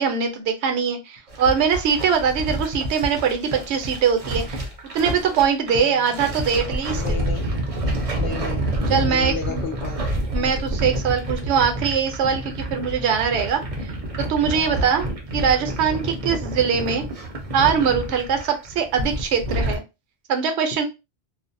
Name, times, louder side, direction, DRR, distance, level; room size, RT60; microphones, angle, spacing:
voice 1, 0.0-4.6 4.9-7.2 8.9-9.6 10.3-13.9 14.2-17.0 17.5-19.8 20.3-20.8, right 7 dB, 70° right, 6 dB, 0.8 m, -22 dB
sound 1, 1.3-19.8, right 1 dB, 40° right, 0.5 m, -28 dB
voice 2, 5.7-6.2 6.9-7.5 8.2-8.7 9.0-10.5 14.5-14.9, left 5 dB, 75° left, 1 dB, 0.9 m, -33 dB
2.5 x 2.0 x 2.5 m, 0.26 s
omnidirectional pair, 1.2 m